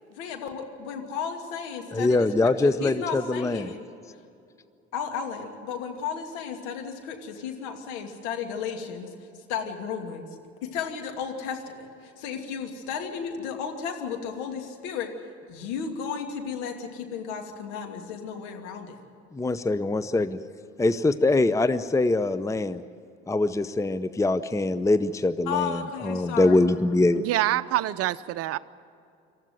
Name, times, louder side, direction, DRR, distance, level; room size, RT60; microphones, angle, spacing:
voice 1, 0.1-3.9 4.9-9.2 9.5-10.2 10.6-15.1 15.5-19.0 25.5-26.6, left 6 dB, 65° left, 4 dB, 2.7 m, -34 dB
voice 2, 1.9-3.7 19.3-20.3 20.8-22.8 23.3-27.2, left 2 dB, 10° left, 13 dB, 0.7 m, -23 dB
voice 3, 27.2-28.6, right 14 dB, 45° right, 16 dB, 0.7 m, -26 dB
27.0 x 14.0 x 9.5 m, 2.6 s
figure-of-eight pair, 55°, 32 cm